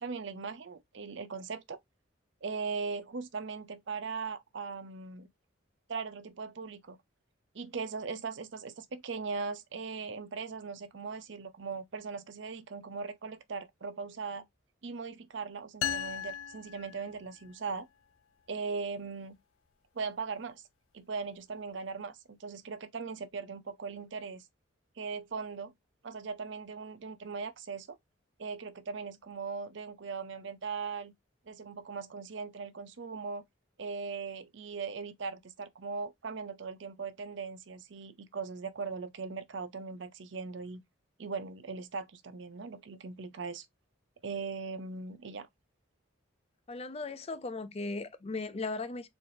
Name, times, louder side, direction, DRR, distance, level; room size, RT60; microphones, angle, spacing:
voice 1, 0.0-1.8 2.4-5.3 5.9-7.0 7.5-14.4 14.8-17.9 18.5-19.3 19.9-20.6 20.9-24.4 25.0-25.7 26.0-28.0 28.4-31.1 31.5-33.4 33.8-40.8 41.2-43.7 44.2-45.5, right 4 dB, 60° right, 0.6 m, -39 dB
sound 1, 15.8-17.6, left 9 dB, 85° left, 0.3 m, -37 dB
voice 2, 46.7-49.1, left 3 dB, 30° left, 0.5 m, -37 dB
4.3 x 3.2 x 2.6 m
head